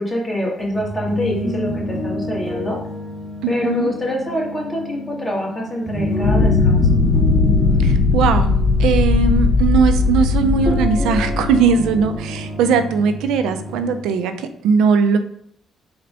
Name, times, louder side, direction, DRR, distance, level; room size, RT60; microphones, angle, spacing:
voice 1, 0.0-2.8 3.5-6.8, left 1 dB, 20° left, -3 dB, 2.2 m, -25 dB
sound 1, 0.6-14.0, equal, 15° right, 1.5 m, -28 dB
voice 2, 3.4-3.9 7.8-8.5 8.8-15.2, right 5 dB, 90° right, 9 dB, 0.5 m, -19 dB
sound 2, 6.2-12.0, left 4 dB, 80° left, 1.0 m, -17 dB
4.3 x 4.0 x 5.5 m, 0.66 s
cardioid pair, 90°, 0 cm